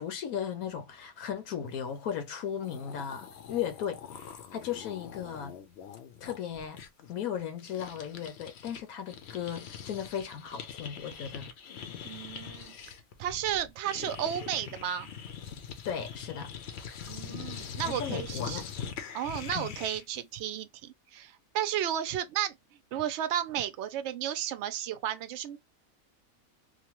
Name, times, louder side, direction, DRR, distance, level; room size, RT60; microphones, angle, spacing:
voice 1, 0.0-5.6 6.2-6.8 7.1-11.5 15.9-16.5 17.9-18.7 19.5-19.7, left 8 dB, 85° left, 1.2 m, -36 dB
sound 1, 2.3-2.4 2.6-8.8 9.1-20.2, left 7 dB, 60° left, 0.8 m, -43 dB
voice 2, 12.0-12.7 13.2-15.1 17.1-18.6 19.1-22.5 22.9-25.6, right 10 dB, 65° right, 0.7 m, -33 dB
2.9 x 2.2 x 2.9 m
omnidirectional pair, 1.5 m